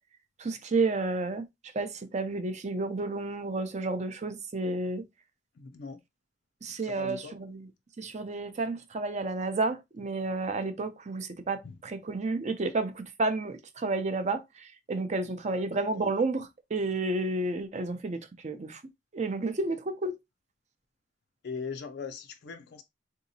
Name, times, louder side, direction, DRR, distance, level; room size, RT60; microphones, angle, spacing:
voice 1, 0.4-1.4 1.7-5.0 6.6-7.7 8.0-14.4 14.9-18.2 18.4-18.8 19.1-20.1, right 3 dB, 40° right, 0.5 m, -31 dB
voice 2, 5.6-6.0 6.8-7.4 11.6-11.8 15.4-16.1 21.4-22.8, left 5 dB, 65° left, 0.4 m, -40 dB
3.8 x 2.7 x 2.7 m
head